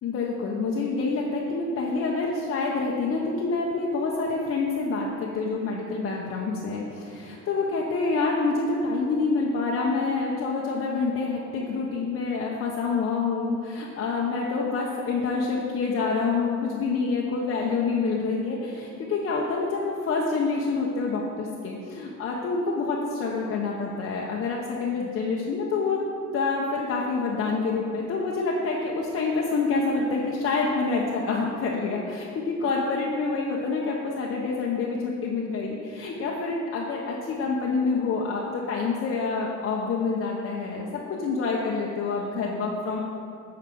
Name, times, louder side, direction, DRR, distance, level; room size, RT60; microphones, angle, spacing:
voice 1, 0.0-26.0 26.3-43.0, left 4 dB, 45° left, -3 dB, 0.9 m, -27 dB
9.0 x 4.9 x 6.2 m, 2.6 s
cardioid pair, 145°, 31 cm